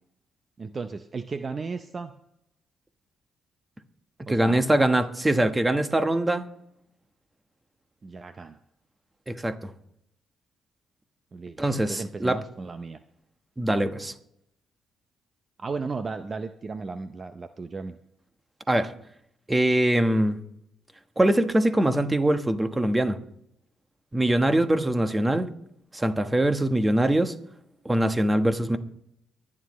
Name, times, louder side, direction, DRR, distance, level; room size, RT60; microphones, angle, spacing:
voice 1, 0.6-2.1 4.3-4.6 8.0-8.6 11.3-13.0 15.6-18.0, right 4 dB, 35° right, 0.6 m, -35 dB
voice 2, 4.3-6.5 9.3-9.7 11.6-12.4 13.6-14.1 18.7-18.9 19.5-20.4 21.2-23.2 24.1-25.5 25.9-27.3 27.8-28.8, right 1 dB, 15° right, 1.2 m, -23 dB
24.0 x 9.8 x 3.2 m
cardioid pair, 90°, 0 cm